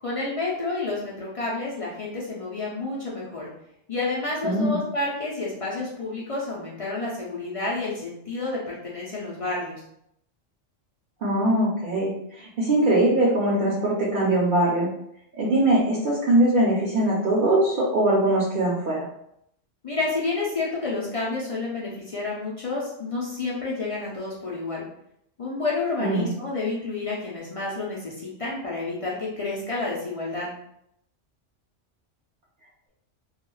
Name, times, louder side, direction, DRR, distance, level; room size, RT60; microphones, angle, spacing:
voice 1, 0.0-3.5 3.9-9.8 19.8-24.8 25.4-30.5, left 3 dB, 55° left, -5 dB, 0.4 m, -30 dB
voice 2, 4.4-4.8 11.2-14.9 15.4-19.0 26.0-26.3, right 1 dB, 55° right, -6 dB, 0.7 m, -22 dB
2.3 x 2.2 x 3.0 m, 0.75 s
omnidirectional pair, 1.2 m